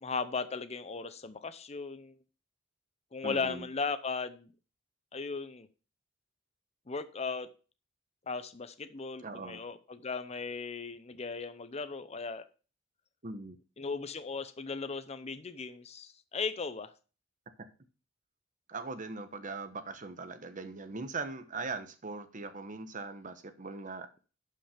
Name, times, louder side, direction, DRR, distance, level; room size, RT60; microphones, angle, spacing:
voice 1, 0.0-2.2 3.1-4.5 5.1-5.7 6.9-7.5 8.3-12.4 13.8-16.9, left 4 dB, 35° left, 0.7 m, -37 dB
voice 2, 3.2-3.7 9.2-9.6 13.2-13.6 18.7-24.1, right 3 dB, 40° right, 1.1 m, -40 dB
11.5 x 5.5 x 5.0 m
head